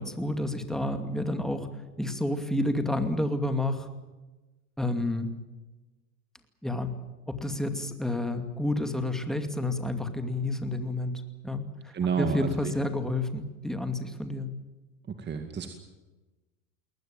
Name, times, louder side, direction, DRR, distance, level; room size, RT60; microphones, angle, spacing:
voice 1, 0.0-1.7 2.0-3.9 4.8-5.3 6.6-6.9 7.3-14.6, left 1 dB, ahead, 7 dB, 2.5 m, -30 dB
voice 2, 11.9-12.6 15.2-15.7, right 6 dB, 25° right, 5 dB, 2.2 m, -29 dB
21.5 x 19.0 x 9.0 m, 1.2 s
supercardioid pair, 115°, 45 cm